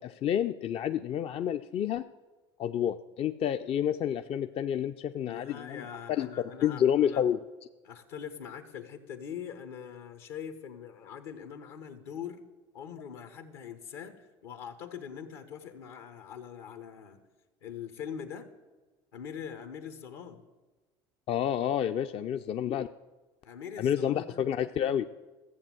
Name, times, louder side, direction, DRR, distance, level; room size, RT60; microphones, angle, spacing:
voice 1, 0.0-2.0 2.6-6.3 6.6-7.4 21.3-22.9 23.8-25.1, left 9 dB, 45° left, 8 dB, 0.5 m, -29 dB
voice 2, 5.3-7.3 7.8-12.5 12.7-17.2 17.6-18.5 19.1-20.5 23.4-24.4, left 8 dB, 75° left, 9 dB, 1.4 m, -43 dB
14.5 x 7.6 x 7.7 m, 1.2 s
hypercardioid pair, 70°, 13 cm